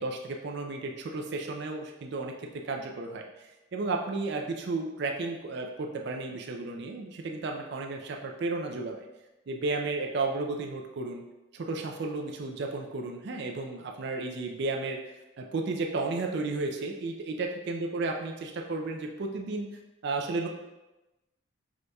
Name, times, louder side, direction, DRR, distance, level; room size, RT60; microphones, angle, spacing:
voice 1, 0.0-9.1 9.5-11.2 11.5-15.0 15.4-19.7 20.0-20.5, right 3 dB, 55° right, 2 dB, 0.4 m, -33 dB
4.9 x 2.3 x 3.9 m, 1.0 s
head